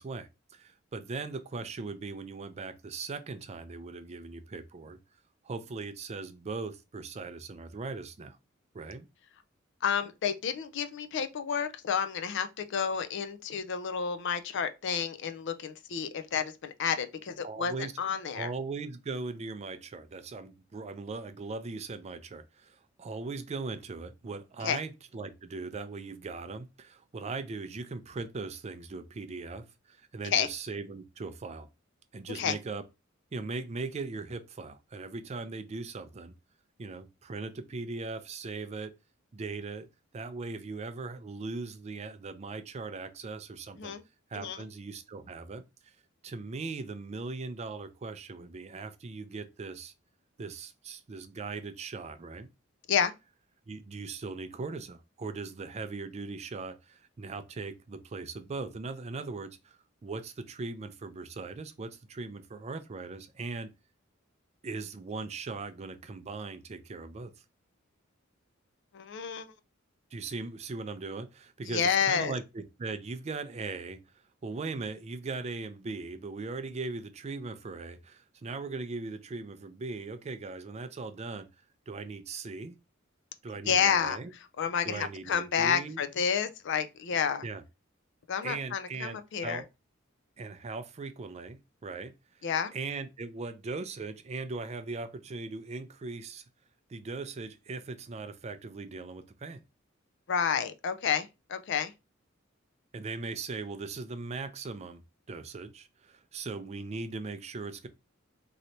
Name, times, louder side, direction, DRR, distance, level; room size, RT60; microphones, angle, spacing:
voice 1, 0.0-5.0 5.4-8.4 8.7-9.1 17.4-17.9 18.3-31.7 32.1-32.8 33.3-36.3 36.8-38.9 39.3-39.9 40.1-43.9 44.3-45.9 46.2-49.9 50.4-52.5 53.7-63.7 64.6-67.3 70.1-74.0 74.4-81.5 81.9-82.8 83.4-84.3 84.8-86.0 87.4-87.6 88.4-89.6 90.4-92.1 92.7-96.4 96.9-99.6 102.9-105.0 105.3-107.9, right 3 dB, 35° right, 0.4 m, -39 dB
voice 2, 9.8-18.5 24.6-24.8 30.3-30.5 32.3-32.6 43.8-44.0 44.3-44.6 52.9-53.1 68.9-69.5 71.7-72.4 83.6-87.4 88.3-89.6 92.4-92.7 100.3-101.9, left 7 dB, 60° left, 0.4 m, -30 dB
3.1 x 2.8 x 2.7 m
head